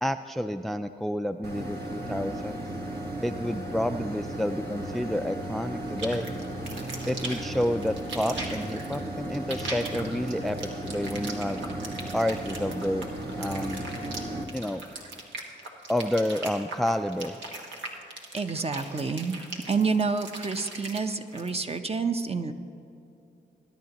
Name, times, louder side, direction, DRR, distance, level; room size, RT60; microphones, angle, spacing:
voice 1, 0.0-2.6 3.2-6.3 7.1-11.6 12.1-13.1 13.3-13.8 14.5-14.8 15.9-17.4, left 1 dB, ahead, 9 dB, 0.3 m, -29 dB
sound 1, 1.4-14.4, right 1 dB, 60° right, 1.6 m, -35 dB
sound 2, 6.0-21.5, right 2 dB, 85° right, 1.5 m, -40 dB
voice 2, 18.3-19.4 19.7-22.5, right 4 dB, 35° right, 7 dB, 0.9 m, -28 dB
20.5 x 10.5 x 3.0 m, 2.8 s
cardioid pair, 55°, 19 cm